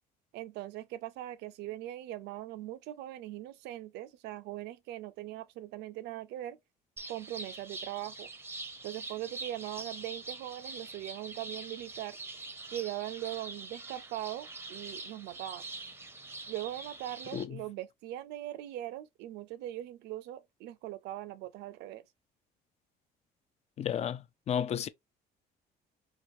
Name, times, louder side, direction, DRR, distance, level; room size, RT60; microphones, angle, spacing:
voice 1, 0.3-6.6 7.1-8.3 8.8-12.2 12.7-15.6 16.5-22.0, right 14 dB, 85° right, 0.5 m, -40 dB
sound 1, 7.0-17.5, right 3 dB, 15° right, 0.5 m, -44 dB
voice 2, 23.8-24.2 24.5-24.9, left 9 dB, 40° left, 0.4 m, -31 dB
3.0 x 2.4 x 2.6 m
cardioid pair, 110°, 17 cm